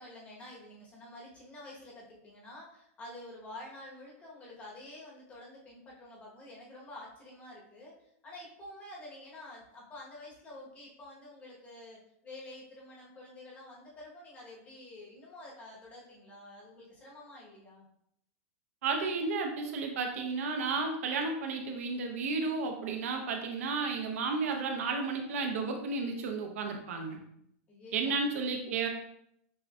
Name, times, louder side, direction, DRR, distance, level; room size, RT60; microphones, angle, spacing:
voice 1, 0.0-7.9 8.2-17.9 27.7-28.2, left 1 dB, 15° left, -4 dB, 1.1 m, -49 dB
voice 2, 18.8-27.2 27.9-28.9, right 4 dB, 65° right, 3 dB, 0.8 m, -32 dB
6.4 x 2.6 x 2.3 m, 0.74 s
supercardioid pair, 165°, 8 cm